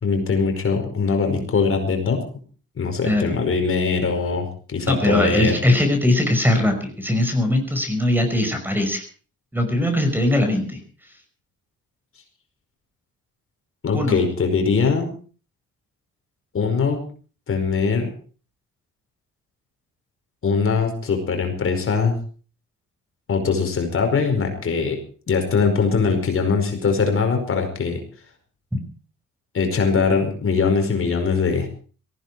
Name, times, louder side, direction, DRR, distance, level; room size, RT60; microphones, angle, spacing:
voice 1, 0.0-2.2 2.8-5.6 13.8-15.1 16.5-17.0 17.5-18.1 20.4-22.2 23.3-25.0 25.3-28.0 29.5-31.7, left 5 dB, 45° left, 4 dB, 5.0 m, -21 dB
voice 2, 3.0-3.4 4.9-9.0 9.5-10.8 13.9-14.2, left 1 dB, 5° right, 6 dB, 5.4 m, -20 dB
18.5 x 15.5 x 4.7 m, 0.40 s
cardioid pair, 90°, 30 cm